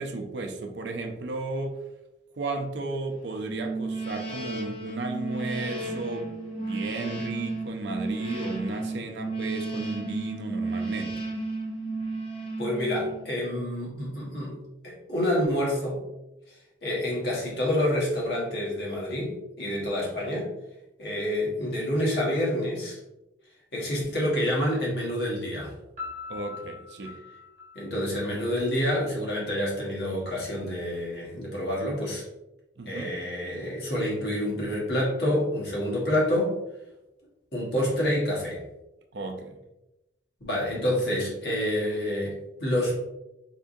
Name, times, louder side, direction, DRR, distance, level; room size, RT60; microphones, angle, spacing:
voice 1, 0.0-1.8 2.3-11.3 26.3-27.2 32.8-33.2 39.1-39.6, right 3 dB, 70° right, 4 dB, 0.5 m, -34 dB
sound 1, 3.5-13.4, right 2 dB, 30° left, 0.7 m, -33 dB
voice 2, 12.6-14.6 14.8-16.0 16.8-20.5 21.0-23.0 23.7-25.7 27.7-32.2 32.9-36.5 37.5-38.6 40.4-43.0, left 1 dB, 60° left, -4 dB, 1.4 m, -28 dB
Piano, 26.0-28.8, left 5 dB, 45° right, 1.1 m, -42 dB
3.7 x 3.6 x 2.6 m, 0.93 s
head